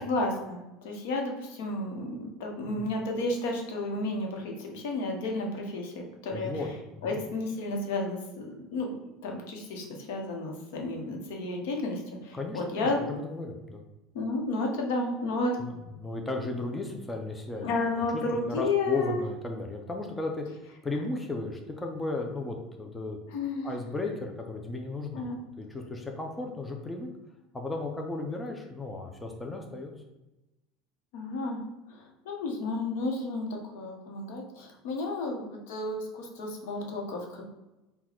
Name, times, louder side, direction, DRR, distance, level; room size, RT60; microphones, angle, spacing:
voice 1, 0.0-6.5 7.0-9.0 9.2-13.0 14.1-15.5 17.6-19.2 23.3-23.7 25.1-25.4 31.1-31.6 31.9-33.5 33.7-37.4, left 2 dB, 80° left, 1 dB, 0.9 m, -32 dB
voice 2, 6.3-6.7 6.9-7.2 12.3-13.8 15.5-17.7 18.1-18.2 18.5-23.2 23.6-25.3 25.6-27.1 27.5-29.9, left 2 dB, 10° left, 1 dB, 0.4 m, -35 dB
4.0 x 2.2 x 4.4 m, 1.0 s
cardioid pair, 170°, 0 cm